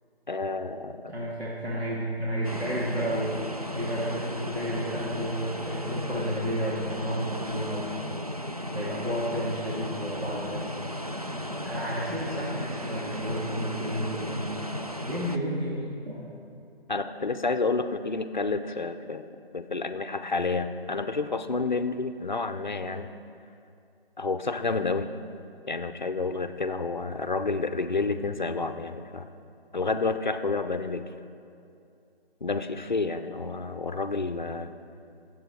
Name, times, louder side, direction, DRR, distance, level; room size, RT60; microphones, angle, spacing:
voice 1, 0.3-1.0 16.9-19.3 19.5-23.1 24.2-25.1 25.7-29.3 29.7-31.1 32.4-34.7, left 3 dB, 50° left, 10 dB, 0.5 m, -29 dB
voice 2, 1.1-3.3 3.7-7.9 8.7-10.8 11.6-14.5 15.0-16.3, equal, 90° right, -6 dB, 2.5 m, -31 dB
sound 1, 2.4-15.4, equal, 40° right, 0.4 m, -35 dB
17.5 x 7.8 x 4.5 m, 2.5 s
figure-of-eight pair, 175°, 31 cm